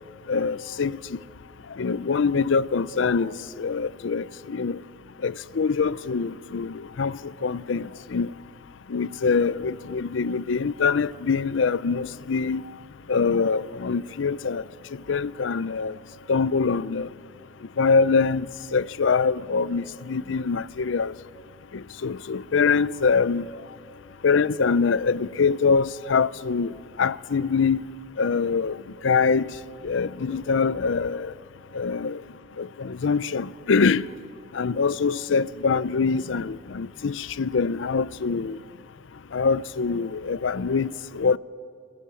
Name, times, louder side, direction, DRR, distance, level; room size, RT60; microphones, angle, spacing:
voice 1, 0.3-1.2 1.7-4.8 5.2-8.3 8.9-12.6 13.1-14.6 14.9-16.0 16.3-17.1 17.8-21.1 21.7-23.5 24.2-27.9 28.2-28.8 29.0-29.5 29.8-31.3 31.7-32.2 32.6-34.1 34.5-38.6 39.3-41.4, left 5 dB, 70° left, 0.5 m, -24 dB
22.5 x 22.0 x 7.0 m
head